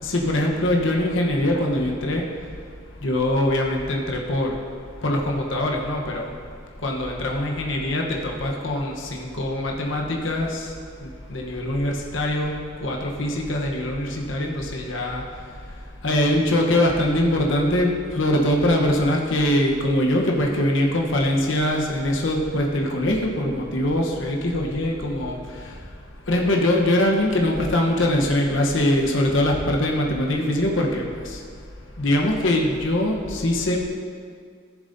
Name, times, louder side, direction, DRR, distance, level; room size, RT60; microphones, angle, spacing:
voice 1, 0.0-2.2 3.0-4.6 5.0-6.3 6.8-10.7 11.3-15.2 16.0-25.4 26.3-31.4 32.0-33.8, left 1 dB, 80° left, 0 dB, 1.0 m, -22 dB
14.5 x 7.0 x 2.7 m, 2.1 s
head